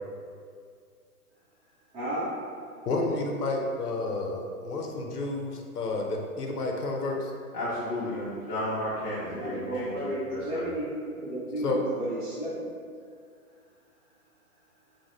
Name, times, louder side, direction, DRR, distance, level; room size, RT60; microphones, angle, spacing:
voice 1, 1.9-2.3 9.2-12.7, right 1 dB, 10° right, -13 dB, 0.7 m, -33 dB
voice 2, 2.9-7.3 11.6-11.8, left 2 dB, 85° left, 1 dB, 0.7 m, -30 dB
voice 3, 7.5-10.6, left 1 dB, 40° left, -10 dB, 0.9 m, -33 dB
3.7 x 2.1 x 3.1 m, 2.2 s
hypercardioid pair, 130°, 45 cm